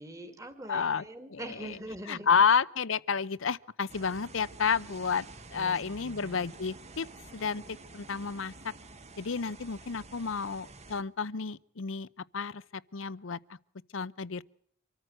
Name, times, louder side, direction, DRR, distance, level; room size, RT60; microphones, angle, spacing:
voice 1, 0.0-2.4 5.5-6.5, right 1 dB, 15° right, 2.3 m, -43 dB
voice 2, 0.7-1.0 1.3-1.4 2.1-5.2 5.5-7.1 7.3-8.5 9.2-12.1 12.3-12.6 12.9-13.4 13.9-14.4, left 6 dB, 75° left, 0.7 m, -30 dB
sound 1, 3.9-11.0, right 2 dB, 35° right, 1.4 m, -49 dB
26.0 x 14.0 x 7.8 m
head